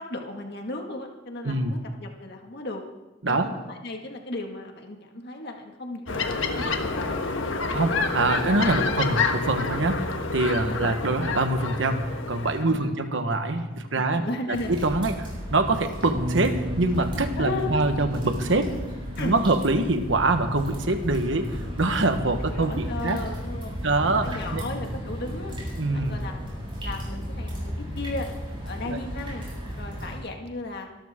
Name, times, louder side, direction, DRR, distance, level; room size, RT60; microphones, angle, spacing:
voice 1, 0.0-2.8 3.3-3.5 3.8-7.2 8.8-9.1 9.6-9.7 10.6-10.9 12.7-12.9 13.9-14.7 17.4-17.7 19.2-19.4 22.4-25.6 25.9-26.4 26.8-28.3 28.6-29.5 29.8-30.9, left 2 dB, 55° left, 2 dB, 2.0 m, -35 dB
voice 2, 1.4-1.8 3.2-3.5 7.7-18.7 19.2-23.2 23.8-24.6 25.8-26.1 28.8-29.0, right 2 dB, 70° right, 7 dB, 1.3 m, -25 dB
sound 1, 6.1-12.6, left 4 dB, 80° left, 1.4 m, -28 dB
sound 2, 14.5-30.2, equal, 25° right, 7.5 m, -34 dB
Bass guitar, 16.1-22.4, equal, 45° right, 1.9 m, -37 dB
24.5 x 13.0 x 3.7 m, 1.1 s
head